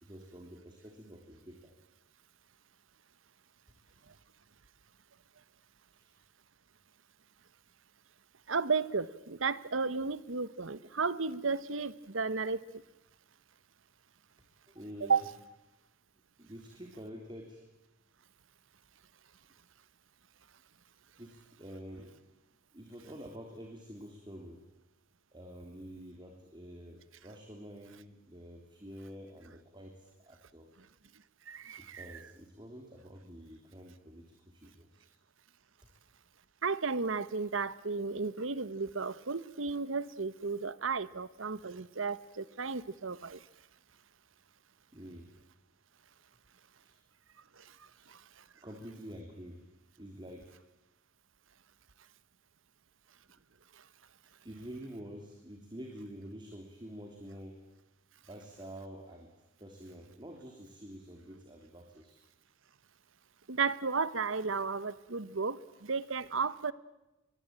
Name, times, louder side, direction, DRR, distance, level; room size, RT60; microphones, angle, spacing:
voice 1, 0.0-1.7 3.8-4.1 5.9-6.2 14.7-15.3 16.4-17.6 21.2-22.1 22.7-24.6 25.3-30.7 31.8-35.1 41.0-41.1 44.9-45.3 46.8-47.0 47.9-48.1 48.6-49.6 50.0-50.6 54.4-57.6 58.2-59.3 59.6-62.2, equal, 25° right, 2 dB, 3.3 m, -48 dB
voice 2, 8.5-12.6 15.0-15.3 31.5-32.1 36.6-43.4 47.6-47.7 48.1-48.2 63.5-66.7, right 4 dB, 90° right, 17 dB, 1.1 m, -33 dB
24.0 x 23.0 x 8.9 m, 0.98 s
head